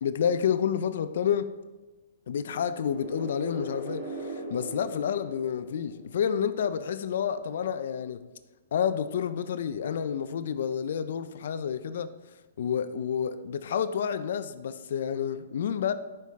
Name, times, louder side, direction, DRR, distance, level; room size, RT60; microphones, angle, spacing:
voice 1, 0.0-1.5 2.3-8.2 8.7-12.1 12.6-15.9, left 8 dB, 65° left, 0.3 m, -29 dB
sound 1, 2.5-6.3, right 2 dB, 25° right, 1.8 m, -40 dB
6.4 x 5.4 x 3.5 m
hypercardioid pair, 165°, 0 cm